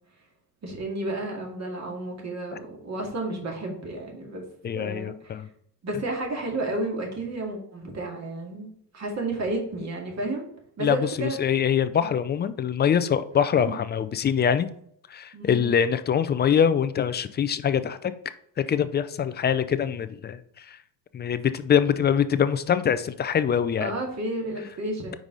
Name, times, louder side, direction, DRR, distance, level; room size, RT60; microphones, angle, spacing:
voice 1, 0.6-4.4 4.7-5.3 5.8-10.5 10.8-11.4 11.9-12.1 13.6-13.8 15.3-15.7 23.8-25.2, right 2 dB, 35° right, 0 dB, 2.2 m, -32 dB
voice 2, 4.6-5.5 10.8-14.7 15.1-18.1 18.6-20.8 21.1-23.9, left 8 dB, 25° left, 13 dB, 0.4 m, -24 dB
5.2 x 4.8 x 4.0 m, 0.68 s
supercardioid pair, 95°, 44 cm